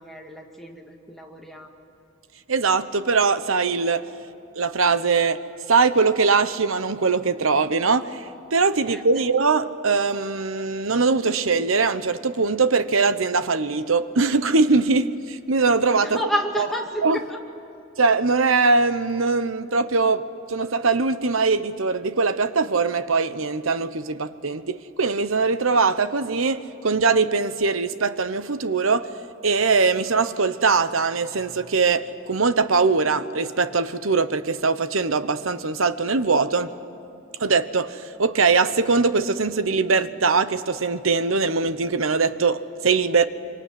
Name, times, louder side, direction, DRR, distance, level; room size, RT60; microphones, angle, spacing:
voice 1, 0.0-1.8 8.9-9.2 16.0-17.4, equal, ahead, 2.2 m, -30 dB
voice 2, 2.5-4.0 4.6-5.4 5.7-8.2 8.5-16.2 17.0-17.2 18.0-29.1 29.4-36.7 37.4-43.2, right 4 dB, 80° right, 1.0 m, -21 dB
25.0 x 24.5 x 9.5 m
head